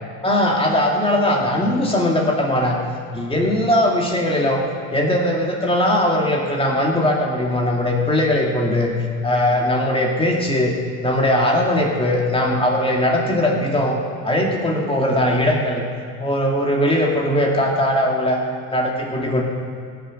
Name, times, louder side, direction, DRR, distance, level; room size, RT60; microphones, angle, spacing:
voice 1, 0.2-2.8 3.1-4.6 4.9-10.7 11.0-14.0 14.2-15.8 16.2-18.4 18.7-19.4, left 1 dB, 15° left, -1 dB, 2.3 m, -19 dB
16.5 x 6.9 x 7.7 m, 2.3 s
supercardioid pair, 105°, 36 cm